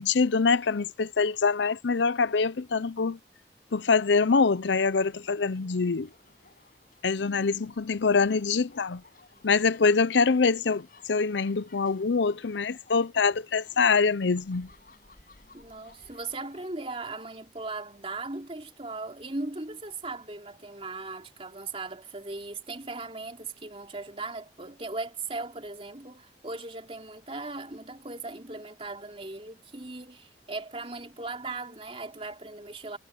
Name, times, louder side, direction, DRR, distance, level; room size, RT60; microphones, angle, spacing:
voice 1, 0.0-3.2 3.7-6.1 7.0-9.0 9.4-14.7, left 4 dB, 90° left, 0.7 m, -24 dB
sound 1, 4.5-16.7, left 3 dB, 55° left, 6.7 m, -58 dB
voice 2, 15.5-33.0, right 3 dB, 30° right, 3.3 m, -38 dB
head